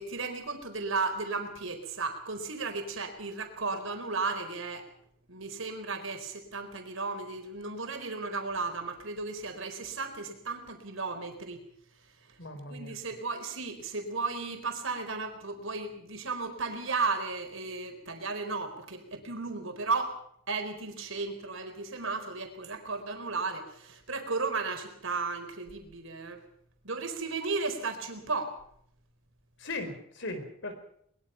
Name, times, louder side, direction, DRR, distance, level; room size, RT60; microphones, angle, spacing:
voice 1, 0.0-4.8 5.3-11.6 12.3-12.4 12.7-20.2 20.5-26.4 26.8-28.6, right 4 dB, 70° right, 5 dB, 4.4 m, -34 dB
voice 2, 12.4-13.0 29.6-30.7, left 2 dB, 60° left, 8 dB, 4.6 m, -38 dB
22.5 x 22.0 x 5.8 m, 0.68 s
head